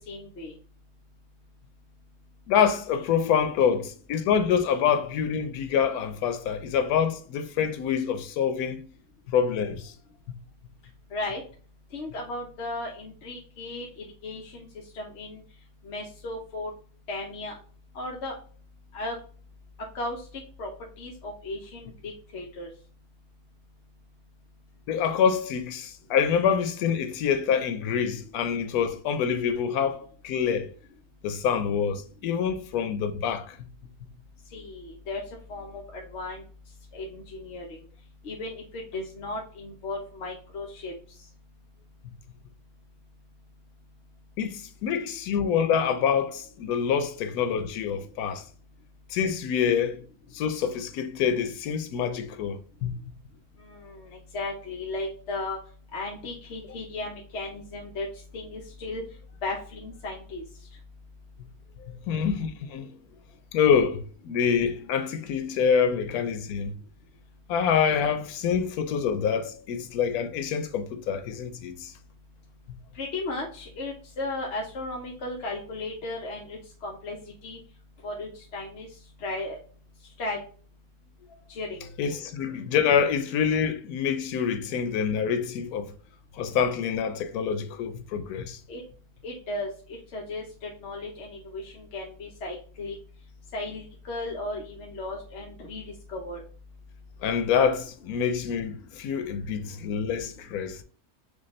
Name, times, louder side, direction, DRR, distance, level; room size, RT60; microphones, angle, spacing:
voice 1, 0.1-0.5 11.1-11.4 11.9-14.7 14.9-15.4 15.8-16.7 17.1-17.5 17.9-18.3 18.9-19.2 19.9-20.7 21.0-22.7 34.5-35.2 35.5-36.4 36.9-37.8 38.2-40.9 41.2-41.3 53.6-55.6 55.9-58.1 58.3-59.0 59.4-60.4 72.9-77.6 78.0-78.9 79.2-79.6 80.2-80.4 81.5-81.9 88.7-88.8 89.2-93.0 93.5-95.8 96.1-96.4, left 2 dB, 55° left, 0.9 m, -35 dB
voice 2, 2.5-8.9 9.3-9.9 24.9-30.7 31.2-33.5 44.4-48.4 49.1-50.0 50.3-52.9 61.9-62.9 63.5-66.8 67.5-71.9 82.0-85.9 86.4-88.6 97.2-100.8, left 7 dB, 90° left, 1.1 m, -26 dB
4.9 x 2.3 x 3.1 m
omnidirectional pair, 1.5 m